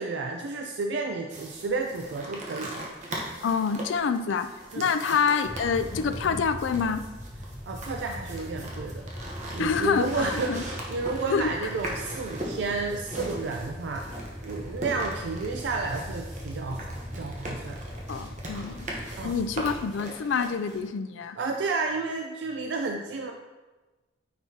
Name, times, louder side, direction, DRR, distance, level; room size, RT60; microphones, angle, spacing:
voice 1, 0.0-2.8 4.7-4.9 7.7-9.1 9.5-14.1 14.4-17.8 19.2-19.3 21.4-23.3, right 3 dB, 65° right, 3 dB, 0.4 m, -31 dB
sound 1, 1.3-20.9, right 1 dB, 40° right, 1.0 m, -40 dB
voice 2, 3.4-7.1 9.6-10.6 11.3-11.5 18.1-21.4, left 5 dB, 80° left, 10 dB, 0.4 m, -27 dB
sound 2, 5.4-19.8, equal, 5° left, 0.4 m, -40 dB
9.2 x 4.6 x 2.8 m, 1.2 s
head